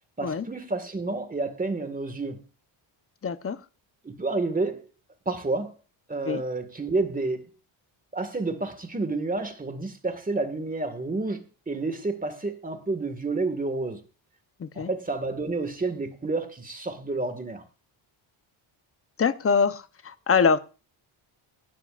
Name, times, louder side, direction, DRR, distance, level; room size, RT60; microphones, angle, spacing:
voice 1, 0.2-2.4 4.0-4.9 5.3-5.7 6.1-7.5 8.1-14.0 14.8-17.6, right 3 dB, 15° right, 1.9 m, -30 dB
voice 2, 3.2-3.6 6.3-6.4 14.6-14.9 19.2-20.6, left 5 dB, 30° left, 0.9 m, -24 dB
17.5 x 12.5 x 2.5 m
cardioid pair, 145°, 49 cm